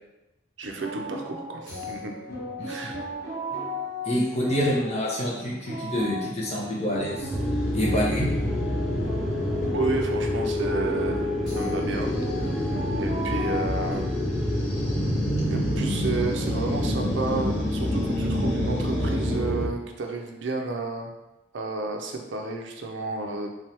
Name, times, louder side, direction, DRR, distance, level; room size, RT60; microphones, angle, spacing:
sound 1, 0.6-13.9, left 1 dB, 55° left, 1.3 m, -37 dB
voice 1, 0.6-2.2 2.7-3.0 9.7-12.1 12.4-14.1 15.5-21.1 21.5-23.5, right 3 dB, 70° right, 2 dB, 0.5 m, -31 dB
voice 2, 4.0-7.3 7.7-8.3, equal, 35° left, -4 dB, 0.9 m, -27 dB
sound 2, 6.9-9.7 11.8-19.4, equal, 85° left, 1.5 m, -31 dB
sound 3, 7.3-19.7, left 1 dB, ahead, 0.5 m, -28 dB
3.6 x 3.3 x 2.9 m, 0.98 s
head